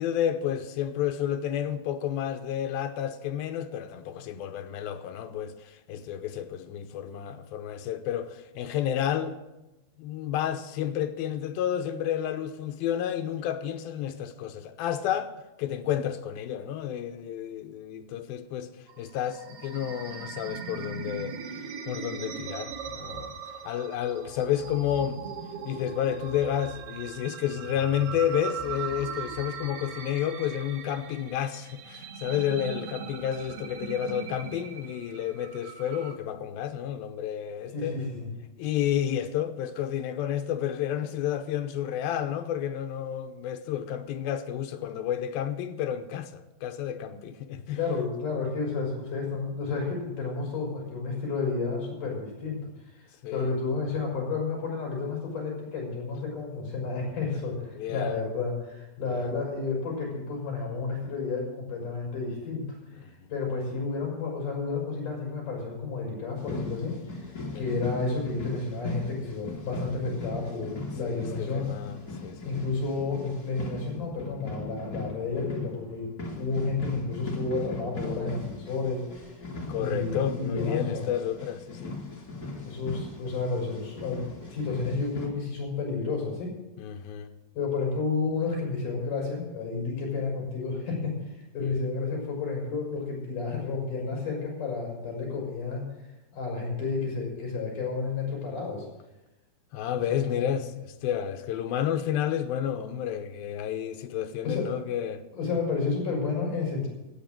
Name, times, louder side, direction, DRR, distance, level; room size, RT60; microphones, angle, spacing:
voice 1, 0.0-9.4 10.0-15.3 15.6-18.7 19.0-21.4 21.8-23.4 23.6-25.2 25.6-38.0 38.6-47.8 53.2-53.5 57.7-58.2 59.1-59.3 63.0-63.1 67.5-67.7 71.0-72.6 79.7-82.0 86.8-87.3 91.6-91.7 99.7-105.2, left 10 dB, 80° left, 2.7 m, -31 dB
sound 1, 18.9-36.2, right 6 dB, 85° right, 3.3 m, -40 dB
voice 2, 37.7-38.3 47.7-53.0 53.3-71.7 72.5-79.3 79.8-81.1 82.7-86.5 87.6-91.2 91.5-95.9 96.3-98.9 100.1-100.2 104.5-104.7 105.3-106.9, left 4 dB, 60° left, 6.7 m, -31 dB
sound 2, 66.4-85.3, left 3 dB, 30° left, 2.3 m, -39 dB
13.5 x 8.8 x 9.0 m
omnidirectional pair, 4.3 m